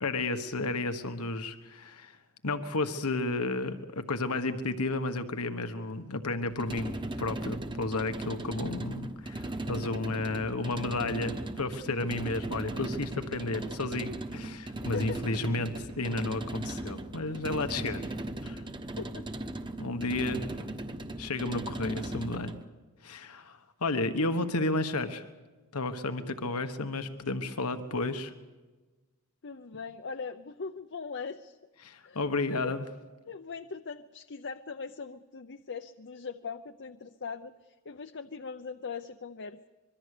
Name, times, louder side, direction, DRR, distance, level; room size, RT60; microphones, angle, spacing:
voice 1, 0.0-2.2 2.4-18.1 18.4-18.6 19.8-20.4 21.2-22.5 23.0-25.2 25.7-28.3 31.8-32.8, left 2 dB, 80° left, 8 dB, 1.4 m, -32 dB
sound 1, 6.5-22.7, right 1 dB, 20° right, 1.2 m, -38 dB
voice 2, 14.8-15.2 19.0-19.4 29.4-31.6 32.0-32.7 33.2-39.7, left 5 dB, 55° left, 8 dB, 0.7 m, -40 dB
25.0 x 23.0 x 6.7 m, 1.3 s
head